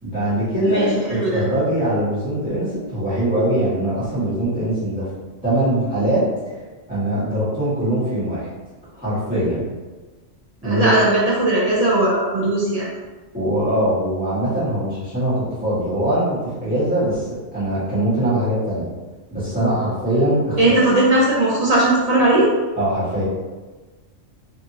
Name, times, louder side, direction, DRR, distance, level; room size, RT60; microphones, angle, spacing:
voice 1, 0.0-5.1 5.4-6.2 6.9-8.5 9.0-9.6 10.6-10.9 13.3-18.9 19.3-20.8 22.8-23.2, right 1 dB, 5° right, -13 dB, 1.2 m, -22 dB
voice 2, 0.6-1.4 10.6-12.9 20.6-22.5, right 2 dB, 50° right, -6 dB, 0.4 m, -18 dB
2.7 x 2.6 x 2.8 m, 1.3 s
omnidirectional pair, 1.3 m